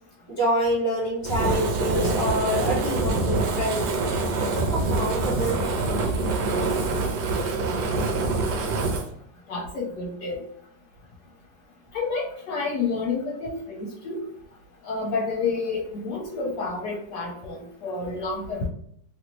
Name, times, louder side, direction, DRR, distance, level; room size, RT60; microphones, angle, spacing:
voice 1, 0.3-3.9 4.4-5.6, equal, 15° left, -5 dB, 1.3 m, -26 dB
Fire, 1.2-9.1, right 3 dB, 80° right, 1.2 m, -25 dB
voice 2, 9.5-10.4 11.9-14.2 14.8-18.7, left 4 dB, 70° left, -2 dB, 1.2 m, -29 dB
3.0 x 2.6 x 2.9 m, 0.68 s
omnidirectional pair, 1.9 m